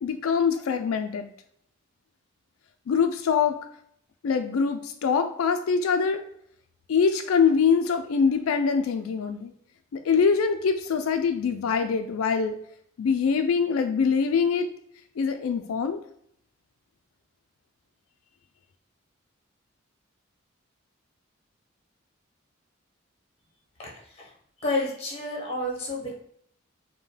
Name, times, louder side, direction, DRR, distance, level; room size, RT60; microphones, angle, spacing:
voice 1, 0.0-1.3 2.9-3.6 4.2-6.2 6.9-9.5 9.9-12.6 13.0-14.7 15.2-16.0, left 6 dB, 85° left, 7 dB, 0.4 m, -24 dB
voice 2, 24.6-26.1, left 2 dB, 30° left, -1 dB, 1.0 m, -30 dB
5.4 x 2.2 x 3.2 m, 0.68 s
head